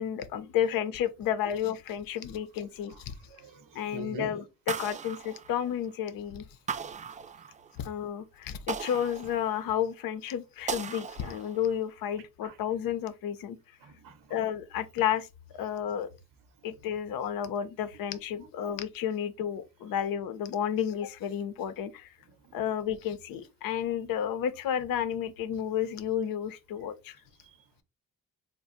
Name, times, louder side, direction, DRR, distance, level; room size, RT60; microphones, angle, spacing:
voice 1, 0.0-3.1 3.7-6.4 7.8-13.6 14.3-15.3 15.5-16.1 16.6-22.1 22.5-27.2, left 9 dB, 70° left, 0.6 m, -31 dB
voice 2, 2.9-4.4 6.8-6.9 12.4-12.6 13.8-14.4 22.3-22.6 27.4-27.6, right 4 dB, 60° right, 0.9 m, -46 dB
sound 1, 4.7-6.0 6.7-7.9 8.7-9.9 10.7-11.8, right 6 dB, 20° right, 0.3 m, -38 dB
2.3 x 2.1 x 3.9 m
hypercardioid pair, 45°, 36 cm